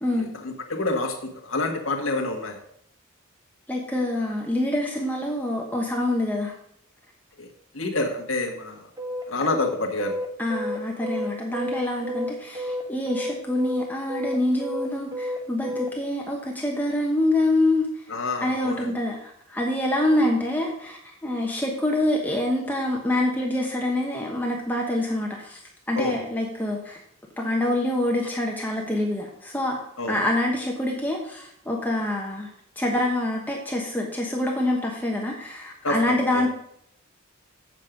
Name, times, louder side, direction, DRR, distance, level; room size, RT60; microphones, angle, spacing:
voice 1, 0.1-2.6 7.4-7.5 7.7-8.9 9.3-10.1 18.1-18.9 25.9-26.2 30.0-30.2 35.8-36.4, left 2 dB, 80° left, 2 dB, 1.6 m, -28 dB
voice 2, 3.7-6.5 10.4-17.9 18.4-25.6 25.9-27.0 27.4-29.8 30.1-32.5 32.8-36.5, left 1 dB, 10° left, -1 dB, 1.1 m, -26 dB
sound 1, 9.0-15.9, equal, 20° right, 1.2 m, -30 dB
7.6 x 7.5 x 5.1 m, 0.71 s
head